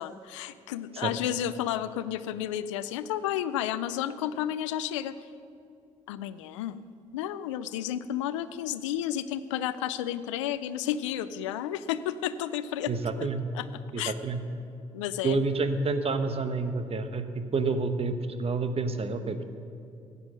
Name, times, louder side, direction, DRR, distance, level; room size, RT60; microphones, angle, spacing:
voice 1, 0.0-5.2 6.1-6.8 7.1-12.9 13.2-13.3 13.5-13.7 14.0-14.1 14.9-15.4, left 11 dB, 80° left, 15 dB, 0.5 m, -32 dB
voice 2, 12.9-13.4 13.9-14.4 15.2-19.4, right 3 dB, 40° right, 9 dB, 1.2 m, -29 dB
15.5 x 9.9 x 6.3 m, 2.4 s
hypercardioid pair, 50°, 16 cm